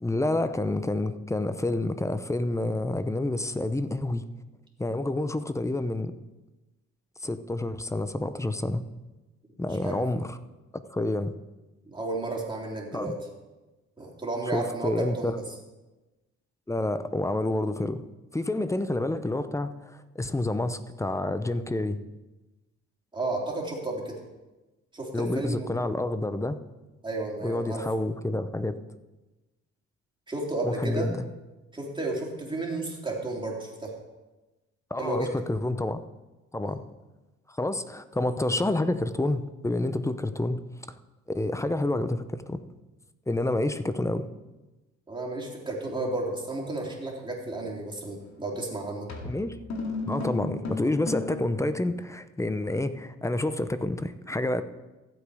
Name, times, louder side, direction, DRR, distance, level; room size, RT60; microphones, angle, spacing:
voice 1, 0.0-4.3 4.8-6.1 7.2-8.8 9.6-10.4 10.9-11.3 12.9-13.1 14.5-15.4 16.7-18.0 18.3-22.0 25.1-26.6 27.4-28.8 30.6-31.2 34.9-36.0 36.5-36.8 37.5-40.6 40.9-41.0 41.3-42.6 43.3-44.3 49.2-49.6 50.0-54.6, left 2 dB, 10° left, 12 dB, 0.7 m, -28 dB
voice 2, 11.9-13.1 14.0-15.3 23.1-24.1 24.9-25.7 27.0-27.8 30.3-31.1 31.7-33.9 35.0-35.3 36.7-36.8 43.4-43.7 45.1-49.1, right 2 dB, 15° right, -2 dB, 3.4 m, -32 dB
sound 1, 48.2-48.4 49.1-51.5, left 3 dB, 65° left, 2.3 m, -34 dB
15.0 x 8.4 x 4.9 m, 1.1 s
cardioid pair, 90°, 30 cm